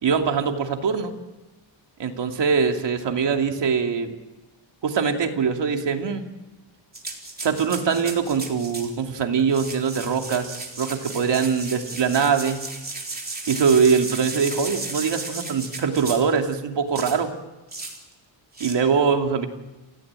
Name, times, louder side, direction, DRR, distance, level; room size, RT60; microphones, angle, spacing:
voice 1, 0.0-1.1 2.0-4.1 4.8-6.2 7.4-12.7 13.5-17.3 18.6-19.5, right 6 dB, 65° right, 4 dB, 2.8 m, -22 dB
sound 1, 6.9-9.0 9.4-16.4 17.0-17.2 17.7-18.0 18.5-18.7, right 3 dB, 20° right, 3.7 m, -35 dB
29.0 x 16.0 x 8.9 m, 1.1 s
wide cardioid pair, 135°, 45 cm